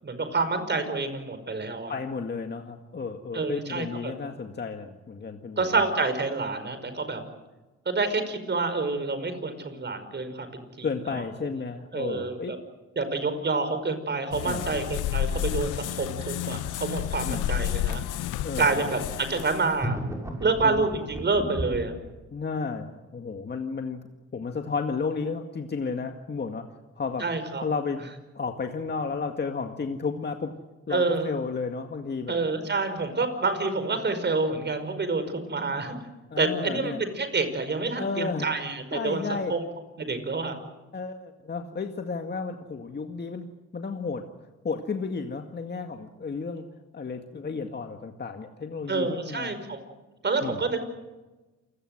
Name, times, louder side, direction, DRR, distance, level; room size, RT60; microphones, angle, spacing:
voice 1, 0.0-1.9 3.3-4.1 5.6-7.2 7.9-11.2 11.9-12.6 13.0-18.0 18.6-20.0 20.4-21.9 27.2-27.6 30.9-31.3 32.3-36.0 36.4-39.2 39.5-39.6 40.0-40.6 48.9-49.8 50.2-50.8, right 3 dB, 35° right, 9 dB, 5.4 m, -28 dB
voice 2, 1.9-5.8 10.8-12.5 14.4-14.7 17.3-17.5 18.4-19.0 20.6-20.9 22.3-24.0 24.3-26.7 27.0-27.3 27.6-28.0 28.3-30.5 30.9-32.4 36.3-37.0 38.0-38.5 38.9-39.5 40.9-43.5 43.7-44.2 44.6-46.6 46.9-49.5 50.4-50.6, left 4 dB, 35° left, 5 dB, 2.0 m, -32 dB
sound 1, 14.3-19.8, left 12 dB, 90° left, 0.8 m, -31 dB
sound 2, 19.8-22.0, right 1 dB, 10° right, 6.4 m, -33 dB
28.5 x 17.5 x 8.0 m, 1.1 s
cardioid pair, 90°, 30 cm